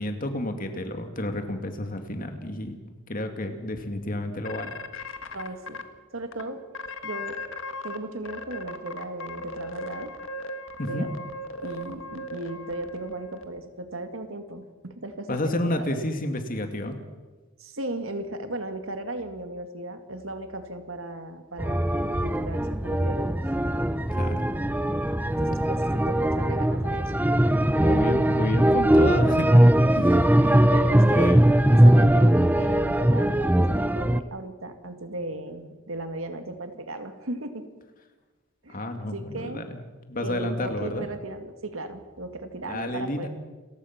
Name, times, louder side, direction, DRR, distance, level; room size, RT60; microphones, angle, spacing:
voice 1, 0.0-2.8 3.1-4.7 10.8-11.0 15.3-17.0 24.1-24.4 27.8-29.7 31.1-31.4 38.7-39.8 40.1-41.1 42.6-43.3, left 1 dB, 40° left, 6 dB, 2.3 m, -30 dB
sound 1, 4.5-5.8 6.3-6.4 6.7-8.0 8.3-13.5, left 1 dB, 70° left, 1.6 m, -37 dB
voice 2, 5.3-5.8 6.1-6.6 7.0-7.4 7.8-10.1 10.9-11.1 11.6-16.0 17.6-23.4 24.3-24.5 25.3-27.1 30.0-31.2 31.7-37.6 38.6-39.7 40.2-43.3, right 1 dB, 80° right, 7 dB, 2.2 m, -36 dB
sound 2, 21.6-34.2, right 1 dB, 10° right, 0.6 m, -20 dB
28.5 x 15.5 x 6.0 m, 1.3 s
head